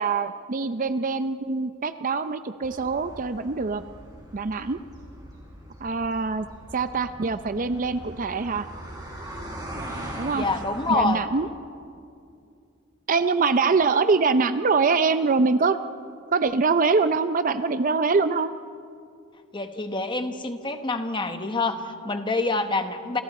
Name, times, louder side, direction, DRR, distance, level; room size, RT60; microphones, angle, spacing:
voice 1, 0.0-3.8 4.3-4.8 5.8-6.5 6.7-8.7 10.2-10.4 10.9-11.5 13.1-15.8 16.3-18.5, right 4 dB, 40° right, 11 dB, 0.5 m, -23 dB
sound 1, 2.6-11.1, right 1 dB, 20° right, 4.9 m, -40 dB
voice 2, 10.3-11.2 19.5-23.2, left 3 dB, 20° left, 7 dB, 1.2 m, -27 dB
29.5 x 27.0 x 4.2 m, 2.4 s
head